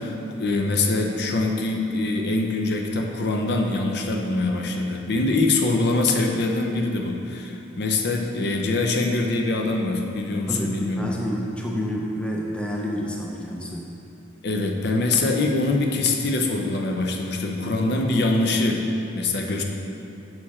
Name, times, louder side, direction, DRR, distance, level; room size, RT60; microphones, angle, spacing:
voice 1, 0.0-11.1 14.4-18.8 19.1-19.6, left 2 dB, 50° left, 2 dB, 0.6 m, -24 dB
voice 2, 10.5-13.9, equal, 5° left, -2 dB, 0.5 m, -29 dB
6.6 x 6.1 x 4.2 m, 2.8 s
head